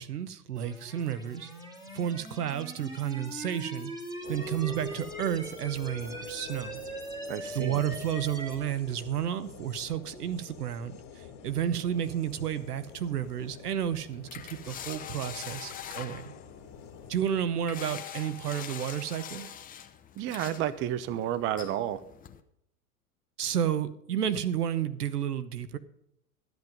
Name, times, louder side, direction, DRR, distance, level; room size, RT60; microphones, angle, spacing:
voice 1, 0.0-1.5 1.9-3.9 4.3-6.8 7.5-11.0 11.4-16.3 17.1-19.5 23.4-25.8, right 9 dB, 80° right, 13 dB, 1.0 m, -31 dB
sound 1, 0.5-8.5, right 1 dB, 10° right, 2.7 m, -41 dB
sound 2, 4.2-17.4, left 6 dB, 45° left, 2.1 m, -48 dB
voice 2, 7.3-7.8 20.2-22.0, right 11 dB, 25° right, 15 dB, 0.6 m, -31 dB
sound 3, 11.9-22.4, left 9 dB, 20° left, 0.7 m, -45 dB
13.0 x 8.1 x 5.3 m, 0.74 s
hypercardioid pair, 100°, 46 cm